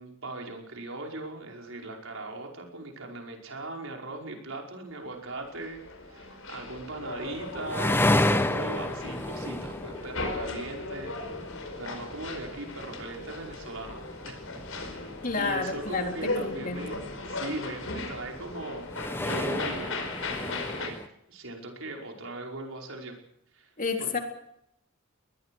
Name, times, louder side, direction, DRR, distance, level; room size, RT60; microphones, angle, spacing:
voice 1, 0.0-11.2 11.8-14.4 14.7-15.0 15.4-17.0 17.3-21.0 21.3-23.2 23.5-23.7 24.0-24.1, right 2 dB, 70° right, 1 dB, 5.4 m, -39 dB
sound 1, 5.3-20.9, left 2 dB, 75° left, 4.9 m, -37 dB
sound 2, 7.3-21.1, left 1 dB, 10° left, 1.1 m, -33 dB
voice 2, 15.2-16.9 23.8-24.2, left 4 dB, 40° left, 4 dB, 3.6 m, -30 dB
22.5 x 21.0 x 6.4 m, 0.77 s
head